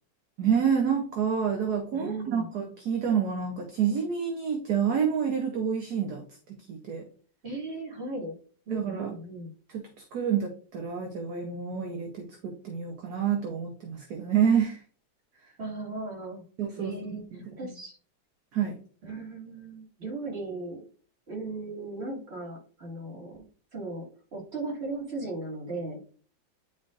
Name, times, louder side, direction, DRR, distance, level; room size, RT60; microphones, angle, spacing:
voice 1, 0.4-7.1 8.7-9.1 9.7-9.8 10.1-14.8 16.6-16.9 17.3-17.4 18.5-18.8, right 7 dB, 60° right, 3 dB, 1.3 m, -28 dB
voice 2, 1.9-2.5 7.4-8.4 8.7-9.5 15.6-16.4 16.8-18.0 19.0-20.8 21.3-23.4 23.7-26.0, right 2 dB, 35° right, -2 dB, 2.3 m, -37 dB
10.0 x 4.3 x 2.5 m, 0.43 s
omnidirectional pair, 2.1 m